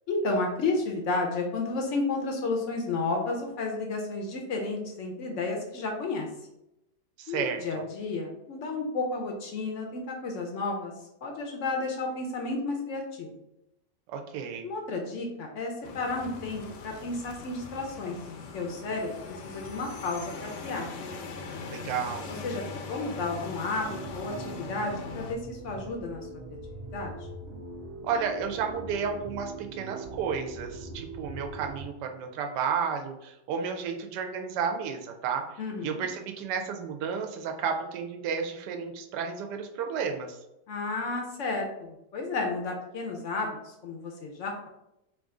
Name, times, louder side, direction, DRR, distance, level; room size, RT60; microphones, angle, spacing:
voice 1, 0.1-6.3 7.3-10.9 11.2-13.3 14.6-18.2 18.5-20.9 22.3-27.1 35.6-36.1 40.7-44.7, left 3 dB, 65° left, 1 dB, 0.7 m, -32 dB
voice 2, 7.2-7.8 14.1-14.7 21.7-22.3 28.0-35.5 35.8-40.4, right 6 dB, 80° right, 4 dB, 1.2 m, -32 dB
sound 1, 15.8-25.3, left 4 dB, 85° left, 1.2 m, -41 dB
sound 2, 23.8-31.8, right 3 dB, 55° right, 0.7 m, -42 dB
3.3 x 2.5 x 3.6 m, 0.88 s
omnidirectional pair, 1.8 m